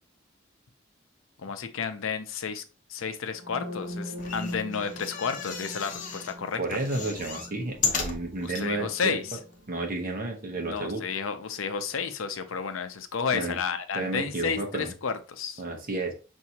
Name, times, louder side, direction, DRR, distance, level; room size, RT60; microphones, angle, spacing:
voice 1, 1.4-2.6 2.9-6.6 8.4-9.4 10.6-15.6, left 6 dB, 80° left, 0.6 m, -31 dB
sound 1, 3.3-11.2, left 1 dB, 80° right, 0.9 m, -42 dB
sound 2, 4.1-6.3 6.7-8.7 9.2-9.3 9.5-9.6, left 5 dB, 40° left, 0.7 m, -34 dB
voice 2, 6.6-9.2 9.7-11.0 13.3-13.6 13.9-14.9 15.6-16.1, right 2 dB, 45° right, 1.0 m, -31 dB
5.8 x 2.7 x 2.8 m
head